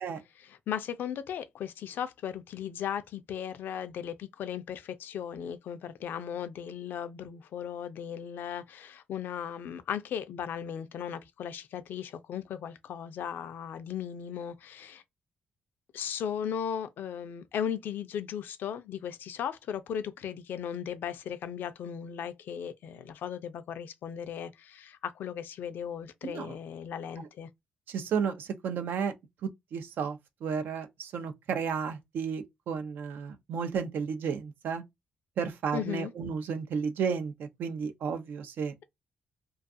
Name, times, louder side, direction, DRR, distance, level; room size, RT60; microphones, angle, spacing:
voice 1, 0.4-15.0 15.9-27.5 35.7-36.1, left 8 dB, 75° left, 0.4 m, -37 dB
voice 2, 26.2-26.6 27.9-29.1 29.4-34.8 35.4-38.7, right 6 dB, 75° right, 0.5 m, -33 dB
2.3 x 2.3 x 2.5 m
cardioid pair, 70°, 3 cm